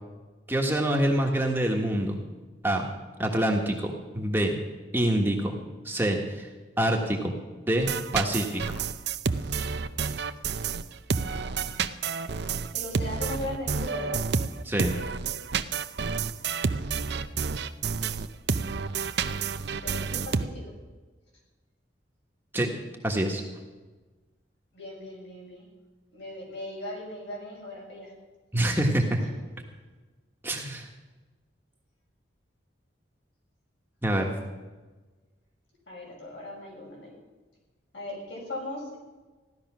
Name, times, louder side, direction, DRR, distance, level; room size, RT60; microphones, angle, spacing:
voice 1, 0.5-2.2 2.6-2.8 3.2-4.6 4.9-5.6 5.8-6.5 6.8-7.3 7.7-8.8 14.6-15.0 22.5-22.7 23.0-23.4 28.5-29.2 30.4-30.9 34.0-34.3, right 1 dB, 10° right, 0 dB, 1.4 m, -26 dB
sound 1, 7.8-20.4, right 5 dB, 60° right, 0.6 m, -29 dB
voice 2, 11.2-11.7 12.7-14.2 19.8-20.7 24.7-25.7 26.1-28.1 29.2-29.3 35.9-37.1 37.9-39.0, left 1 dB, 65° left, -3 dB, 6.7 m, -38 dB
16.0 x 12.0 x 6.1 m, 1.3 s
head